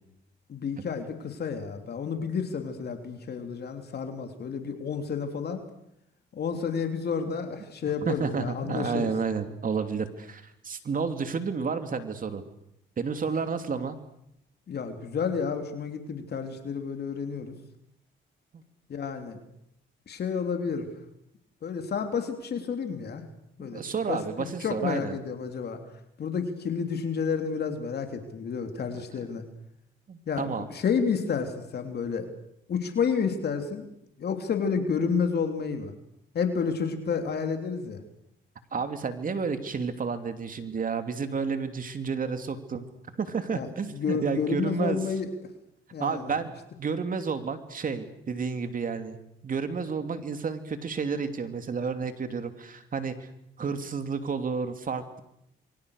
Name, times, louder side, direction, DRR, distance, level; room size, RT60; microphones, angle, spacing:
voice 1, 0.5-5.6 6.3-9.1 14.7-17.5 18.9-19.4 20.1-20.9 21.6-23.2 23.6-23.8 24.1-25.8 26.2-29.4 30.3-32.3 32.7-33.9 34.2-35.9 36.3-38.0 43.5-45.3 45.9-46.3, left 6 dB, 55° left, 6 dB, 3.2 m, -30 dB
voice 2, 8.0-12.4 13.0-14.0 18.5-18.6 23.6-25.2 30.1-30.7 38.7-42.9 43.2-45.0 46.0-46.5 46.8-49.2 49.4-53.3 53.6-55.2, right 5 dB, 45° right, 8 dB, 2.9 m, -31 dB
27.5 x 23.5 x 6.6 m, 0.77 s
cardioid pair, 90°, 20 cm